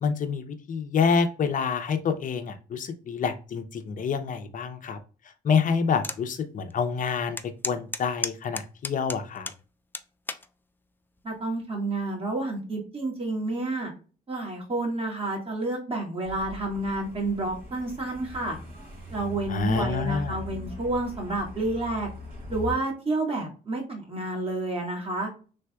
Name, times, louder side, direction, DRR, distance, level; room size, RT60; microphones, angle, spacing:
voice 1, 0.0-5.0 5.4-7.4 7.6-9.5 19.5-20.4, left 6 dB, 50° left, 8 dB, 0.7 m, -27 dB
sound 1, 6.0-6.2 6.7-6.8 7.4-9.6 9.9-10.5 11.2-11.5, left 3 dB, 10° left, 0.3 m, -33 dB
voice 2, 11.2-13.9 14.3-18.6 19.1-22.1 22.5-25.3, right 2 dB, 35° right, 0 dB, 1.6 m, -30 dB
Truck, 16.2-22.7, left 2 dB, 55° right, 1.5 m, -40 dB
3.3 x 3.3 x 2.3 m, 0.35 s
cardioid pair, 85°, 17 cm